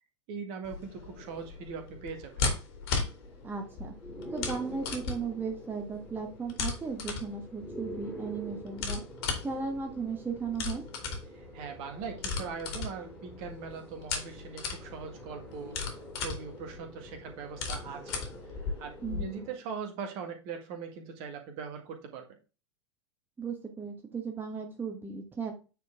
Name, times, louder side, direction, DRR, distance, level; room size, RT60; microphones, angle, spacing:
voice 1, 0.3-2.5 11.3-18.2 18.8-22.4, right 6 dB, 45° right, 5 dB, 1.8 m, -41 dB
sound 1, 0.6-19.2, left 4 dB, 55° left, 2.7 m, -37 dB
sound 2, 1.1-19.6, right 1 dB, 5° left, 2.4 m, -47 dB
voice 2, 3.4-3.9 4.3-9.0 9.4-10.8 19.0-19.5 23.4-25.5, right 5 dB, 15° right, 3 dB, 1.2 m, -36 dB
9.2 x 4.4 x 3.6 m, 0.32 s
figure-of-eight pair, 90°, 16 cm